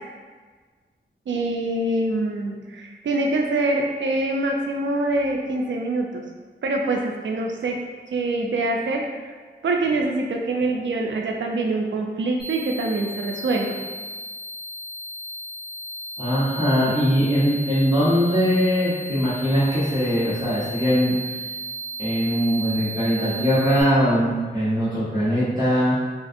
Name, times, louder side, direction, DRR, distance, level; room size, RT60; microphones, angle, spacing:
voice 1, 1.3-6.2 6.6-7.8 8.1-9.3 9.6-13.8, right 2 dB, 90° right, 1 dB, 0.4 m, -24 dB
sound 1, 12.4-23.8, right 1 dB, 5° right, 1.3 m, -35 dB
voice 2, 16.2-21.2 22.0-25.9, equal, 20° right, -11 dB, 1.0 m, -21 dB
3.5 x 2.4 x 2.5 m, 1.4 s
wide cardioid pair, 80°, 19 cm